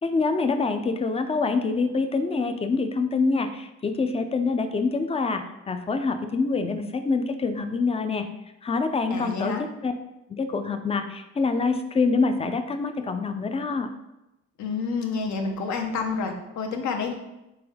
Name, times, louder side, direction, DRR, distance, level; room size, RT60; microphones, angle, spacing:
voice 1, 0.0-8.3 8.6-9.9 10.4-13.9, left 4 dB, 20° left, 8 dB, 0.4 m, -25 dB
voice 2, 9.1-9.6 14.6-17.1, left 4 dB, 70° left, 3 dB, 0.8 m, -29 dB
4.1 x 3.5 x 3.5 m, 0.94 s
cardioid pair, 90°, 30 cm